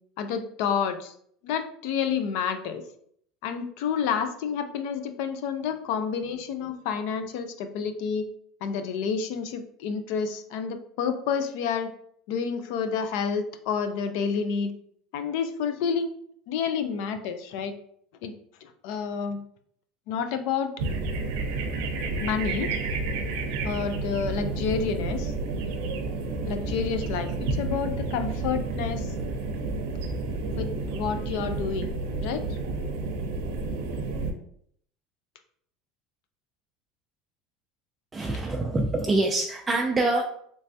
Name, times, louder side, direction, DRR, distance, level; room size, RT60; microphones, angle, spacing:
voice 1, 0.2-1.1 1.4-2.8 3.4-8.2 8.6-11.9 12.3-14.7 15.1-16.1 16.5-17.7 18.2-18.3 18.6-19.4 20.1-20.7 22.2-22.7 23.6-25.3 26.4-29.1 30.5-31.9 32.2-32.4 33.9-34.0, left 6 dB, 70° left, 8 dB, 0.4 m, -29 dB
sound 1, 20.8-34.3, right 3 dB, 75° right, 0.6 m, -30 dB
voice 2, 38.1-40.2, right 2 dB, 15° right, 1 dB, 0.3 m, -25 dB
3.2 x 3.2 x 2.7 m, 0.66 s
supercardioid pair, 140°, 0 cm